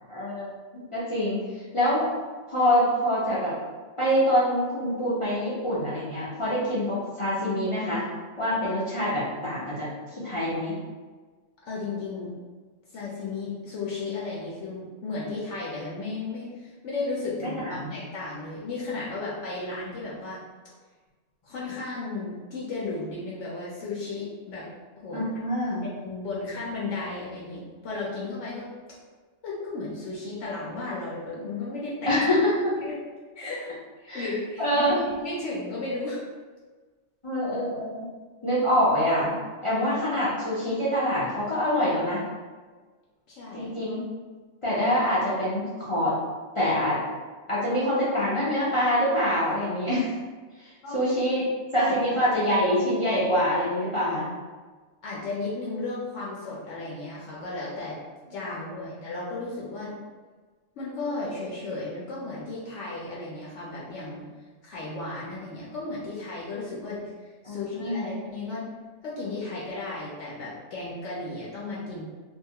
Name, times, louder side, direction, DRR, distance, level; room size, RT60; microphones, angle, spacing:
voice 1, 0.1-2.1 2.5-3.5 4.0-8.0 8.4-10.7 17.4-17.9 25.1-25.8 32.1-32.7 34.1-34.3 34.6-35.0 37.2-37.9 38.4-39.3 39.6-42.2 43.5-44.0 44.6-46.2 46.6-47.0 47.5-50.1 50.6-51.5 51.7-54.3 58.8-58.9 67.4-68.1, equal, 40° left, -9 dB, 0.5 m, -25 dB
voice 2, 11.6-12.3 12.9-20.4 21.4-24.7 25.0-25.2 25.8-28.6 29.4-32.1 32.8-32.9 33.4-33.7 34.0-36.2 43.3-43.7 50.8-51.0 51.8-52.2 55.0-58.0 58.3-60.0 60.8-64.3 64.6-68.7 69.0-72.0, left 3 dB, 75° left, -6 dB, 0.9 m, -34 dB
2.6 x 2.3 x 2.8 m, 1.4 s
omnidirectional pair, 1.3 m